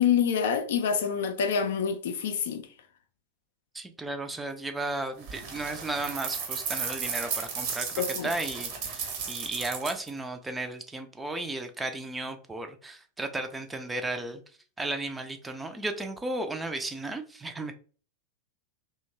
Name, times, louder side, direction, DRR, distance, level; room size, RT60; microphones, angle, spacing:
voice 1, 0.0-2.7 8.0-8.3, left 7 dB, 60° left, 0.4 m, -26 dB
voice 2, 3.7-14.4 14.8-17.7, right 2 dB, 10° right, 0.4 m, -34 dB
sound 1, 5.2-10.1, right 6 dB, 45° right, 0.8 m, -34 dB
2.8 x 2.2 x 2.7 m
figure-of-eight pair, 90°, 0 cm